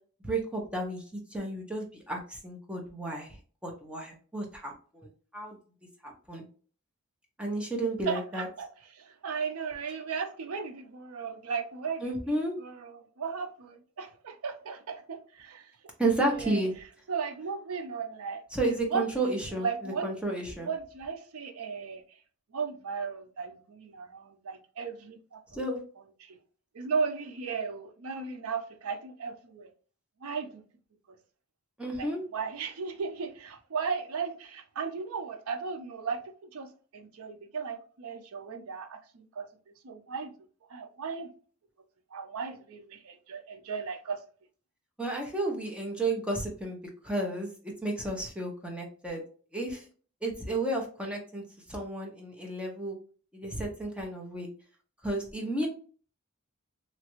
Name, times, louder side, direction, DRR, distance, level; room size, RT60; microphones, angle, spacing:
voice 1, 0.2-3.3 3.6-5.6 6.0-6.4 7.4-8.5 12.0-12.5 16.0-16.7 18.5-20.7 25.5-25.8 31.8-32.2 45.0-46.8 47.0-47.5 47.8-49.2 49.5-49.8 50.2-51.4 51.7-53.0 53.3-54.5 55.0-55.7, right 2 dB, 5° right, 0.6 m, -32 dB
voice 2, 8.1-8.7 8.9-12.1 12.6-15.7 16.3-16.6 17.1-20.2 20.6-22.0 22.5-25.4 26.2-26.4 26.7-29.7 30.2-30.6 32.0-36.7 36.9-39.5 39.8-40.3 40.7-41.3 42.1-44.2, right 5 dB, 75° right, 0.5 m, -36 dB
3.0 x 2.4 x 2.9 m
head